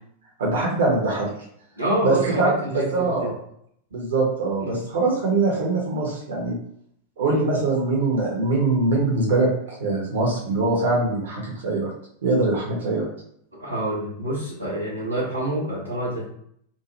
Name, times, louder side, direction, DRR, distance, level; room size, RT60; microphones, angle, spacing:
voice 1, 0.4-1.3 2.0-3.3 3.9-6.5 7.2-9.5 9.8-11.9 12.2-13.1, right 3 dB, 65° right, -3 dB, 1.0 m, -22 dB
voice 2, 1.8-3.3 4.6-4.8 7.2-7.4 13.5-16.3, right 1 dB, 90° right, -7 dB, 1.0 m, -27 dB
2.7 x 2.3 x 3.0 m, 0.68 s
figure-of-eight pair, 90°, 0 cm